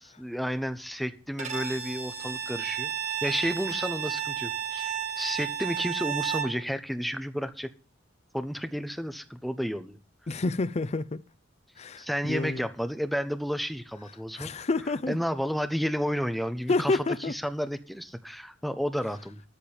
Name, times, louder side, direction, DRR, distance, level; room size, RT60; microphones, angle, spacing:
voice 1, 0.0-2.9 3.2-7.7 8.3-10.0 12.0-14.5 15.1-17.0 17.3-19.4, equal, ahead, 1.0 m, -31 dB
Bowed string instrument, 1.4-6.6, right 9 dB, 40° right, 2.5 m, -32 dB
voice 2, 10.3-11.2 11.8-12.7 14.4-15.2 16.7-17.3, left 3 dB, 35° left, 0.5 m, -29 dB
13.5 x 5.1 x 8.9 m
head